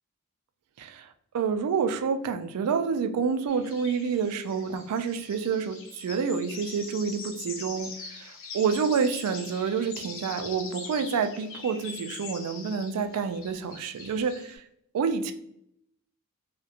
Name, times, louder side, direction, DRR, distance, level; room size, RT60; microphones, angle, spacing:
voice 1, 0.8-1.1 1.3-14.6 14.9-15.3, right 6 dB, 90° right, 9 dB, 0.3 m, -28 dB
sound 1, 3.5-14.5, left 4 dB, 60° left, 0.6 m, -43 dB
2.4 x 2.1 x 2.7 m, 0.73 s
head